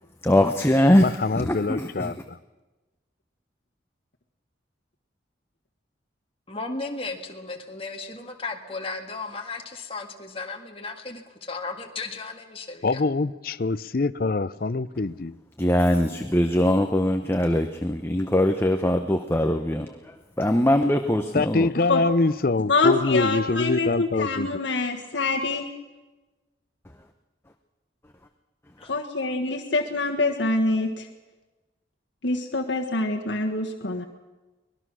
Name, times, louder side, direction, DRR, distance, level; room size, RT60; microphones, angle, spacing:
voice 1, 0.2-1.1 1.3-2.1 15.6-21.7 28.8-28.9, left 1 dB, 15° left, 6 dB, 0.8 m, -22 dB
voice 2, 1.0-2.4 12.8-15.4 21.3-24.5, left 3 dB, 50° left, 17 dB, 0.6 m, -24 dB
voice 3, 6.5-13.0 28.8-28.9, left 3 dB, 30° left, 3 dB, 1.9 m, -35 dB
voice 4, 22.7-25.7 28.9-31.1 32.2-34.1, left 3 dB, 75° left, 2 dB, 1.5 m, -25 dB
23.5 x 20.0 x 6.3 m, 1.2 s
head